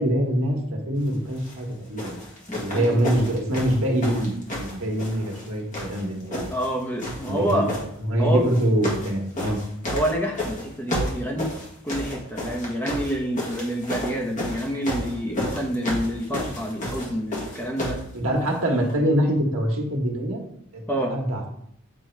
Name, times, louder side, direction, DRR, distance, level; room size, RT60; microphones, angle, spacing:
voice 1, 0.0-2.2 2.6-6.5 7.3-7.7 8.1-9.6 18.1-20.4 20.7-21.5, equal, 70° right, 0 dB, 1.4 m, -24 dB
sound 1, 1.3-1.6 2.0-5.5 5.7-6.7 7.0-7.8 8.5-9.1 9.4-18.1 18.9-19.0, left 1 dB, 35° left, 1.6 m, -31 dB
voice 2, 6.5-7.7 8.2-8.5 9.9-11.5 11.8-18.0 20.9-21.1, equal, 10° left, 0 dB, 0.9 m, -27 dB
8.3 x 3.0 x 4.6 m, 0.70 s
head